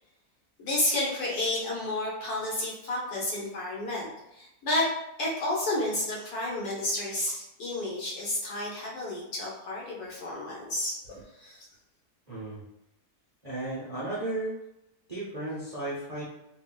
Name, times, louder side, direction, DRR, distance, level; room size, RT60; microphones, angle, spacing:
voice 1, 0.6-4.9 5.2-11.6, left 1 dB, 70° left, -5 dB, 1.4 m, -31 dB
voice 2, 12.3-12.6 13.4-14.6 15.1-16.2, right 2 dB, 45° right, -9 dB, 0.5 m, -34 dB
3.2 x 2.5 x 2.2 m, 0.89 s
omnidirectional pair, 1.7 m